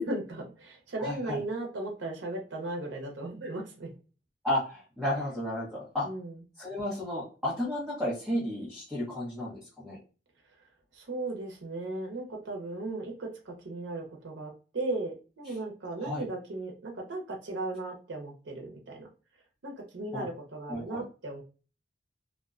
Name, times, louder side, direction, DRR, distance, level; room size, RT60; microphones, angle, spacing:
voice 1, 0.0-3.9 6.0-6.4 10.9-19.1 19.6-21.4, right 2 dB, 90° right, 1 dB, 0.6 m, -36 dB
voice 2, 1.0-1.4 4.4-6.1 6.6-10.0 16.0-16.3 20.1-20.3 20.7-21.0, left 1 dB, ahead, -9 dB, 0.8 m, -33 dB
2.4 x 2.1 x 2.3 m, 0.35 s
head